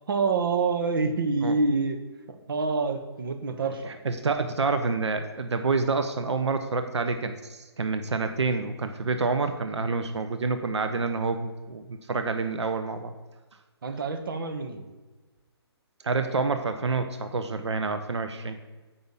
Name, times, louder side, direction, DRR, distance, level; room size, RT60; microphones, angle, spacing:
voice 1, 0.1-2.0 2.5-3.9 13.8-14.8, right 4 dB, 55° right, 5 dB, 1.1 m, -26 dB
voice 2, 4.0-13.1 16.0-18.6, right 4 dB, 90° right, 8 dB, 0.8 m, -28 dB
8.3 x 5.6 x 5.4 m, 1.3 s
hypercardioid pair, 165°, 14 cm